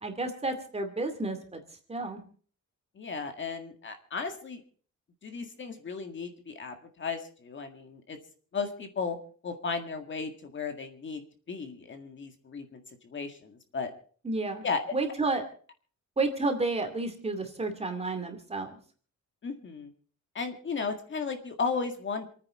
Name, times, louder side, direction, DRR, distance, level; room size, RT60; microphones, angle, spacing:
voice 1, 0.0-1.6 1.9-2.2 14.2-14.7 14.9-15.4 16.2-18.8, right 3 dB, 20° right, 6 dB, 2.4 m, -31 dB
voice 2, 3.0-4.6 5.2-8.2 8.5-9.2 9.4-11.2 11.5-13.9 14.6-14.8 19.4-19.9 20.3-22.3, left 5 dB, 40° left, 6 dB, 1.9 m, -35 dB
28.5 x 9.6 x 4.2 m, 0.43 s
wide cardioid pair, 175°, 31 cm